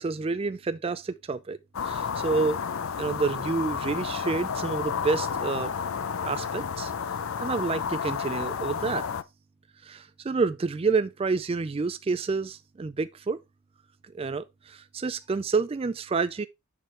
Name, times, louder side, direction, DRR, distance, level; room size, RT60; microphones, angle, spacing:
voice 1, 0.0-1.6 1.8-2.6 3.0-5.7 6.2-6.9 7.4-9.1 9.8-13.4 14.1-16.5, right 4 dB, 25° right, 0.3 m, -29 dB
sound 1, 1.7-9.2, left 6 dB, 65° left, 0.5 m, -31 dB
6.7 x 6.1 x 3.2 m
head